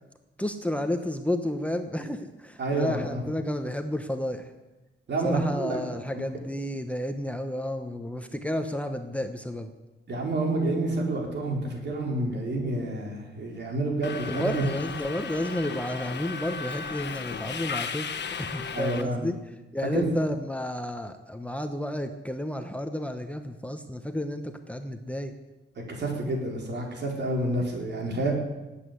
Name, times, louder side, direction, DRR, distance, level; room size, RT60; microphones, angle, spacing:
voice 1, 0.4-4.5 5.2-9.7 14.3-25.3, left 1 dB, 5° left, 6 dB, 1.1 m, -31 dB
voice 2, 2.6-3.2 5.1-5.8 6.1-6.2 10.1-14.6 18.7-19.3 19.9-20.1 25.9-28.3, right 2 dB, 65° right, 0 dB, 4.6 m, -29 dB
Subway metro underground, 14.0-19.0, left 6 dB, 65° left, 1.2 m, -35 dB
19.0 x 8.7 x 8.3 m, 1.1 s
wide cardioid pair, 120°, 20 cm